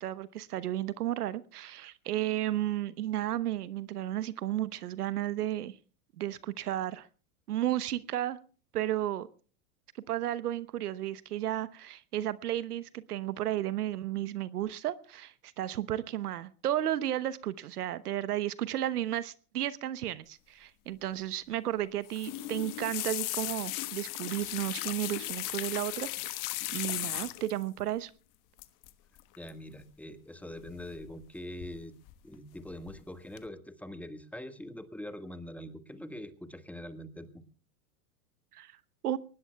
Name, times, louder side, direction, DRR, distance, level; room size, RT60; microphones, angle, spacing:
voice 1, 0.0-5.8 6.2-7.1 7.5-8.4 8.7-9.3 10.1-26.4 26.7-28.1 38.5-38.7 39.0-39.2, right 12 dB, 80° right, 17 dB, 1.0 m, -33 dB
sound 1, 22.1-27.6 28.6-28.9 29.2-29.5 30.7-31.2 31.6-32.1 32.6-33.0 33.4-33.5, left 18 dB, 45° left, 1.3 m, -37 dB
voice 2, 29.4-32.0 32.2-37.4, left 1 dB, 5° left, 10 dB, 1.5 m, -43 dB
23.5 x 19.5 x 2.3 m, 0.38 s
hypercardioid pair, 100°, 46 cm